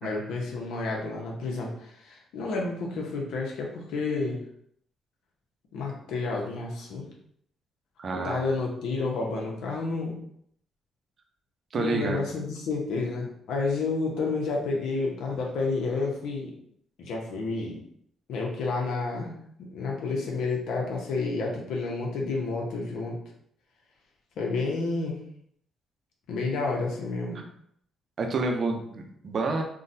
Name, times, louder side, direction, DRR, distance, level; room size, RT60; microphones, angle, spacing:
voice 1, 0.0-4.4 5.7-7.0 8.1-10.1 11.7-16.5 17.0-17.8 18.3-19.3 19.6-23.2 24.4-25.2 26.3-27.4, left 3 dB, 85° left, -1 dB, 0.8 m, -30 dB
voice 2, 8.0-8.5 11.7-12.2 28.2-29.6, right 3 dB, 50° right, 3 dB, 0.6 m, -29 dB
3.7 x 2.3 x 2.7 m, 0.68 s
cardioid pair, 90°, 0 cm